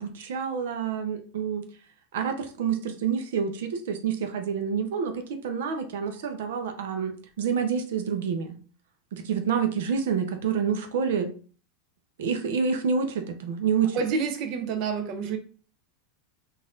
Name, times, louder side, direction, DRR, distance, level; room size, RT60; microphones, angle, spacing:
voice 1, 0.0-1.6 2.1-8.6 9.1-11.3 12.2-14.0, right 6 dB, 80° right, 6 dB, 0.7 m, -28 dB
voice 2, 13.9-15.4, right 5 dB, 45° right, 6 dB, 0.7 m, -28 dB
4.0 x 2.6 x 3.8 m, 0.40 s
supercardioid pair, 150°, 0 cm